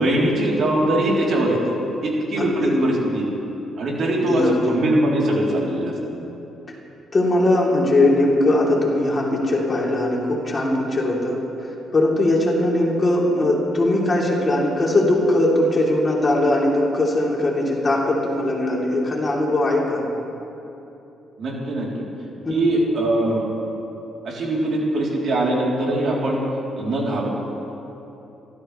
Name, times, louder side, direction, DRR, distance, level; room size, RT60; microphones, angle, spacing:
voice 1, 0.0-1.6 2.0-3.3 3.8-5.9 21.4-22.0 22.5-23.5 24.2-26.4 26.8-27.3, right 1 dB, 60° right, -4 dB, 3.8 m, -21 dB
voice 2, 2.4-2.8 4.1-4.7 7.1-11.4 11.9-20.0 22.4-22.5, left 1 dB, 30° left, -3 dB, 3.5 m, -20 dB
27.5 x 13.5 x 3.4 m, 2.9 s
cardioid pair, 90°, 0 cm